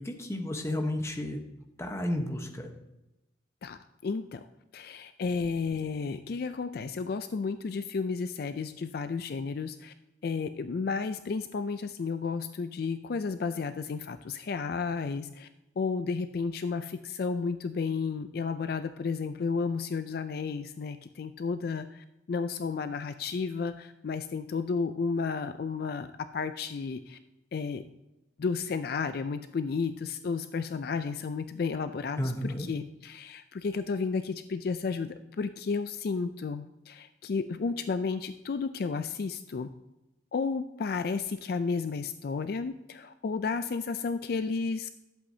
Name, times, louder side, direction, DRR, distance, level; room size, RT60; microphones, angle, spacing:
voice 1, 0.0-1.4 1.8-2.7 32.2-32.7, left 1 dB, 15° left, 3 dB, 1.0 m, -32 dB
voice 2, 3.6-4.5 4.7-9.9 10.2-15.5 15.8-26.1 26.3-27.2 27.5-27.8 28.4-39.7 40.3-44.9, left 5 dB, 55° left, 11 dB, 0.4 m, -32 dB
11.5 x 7.8 x 2.8 m, 0.96 s
head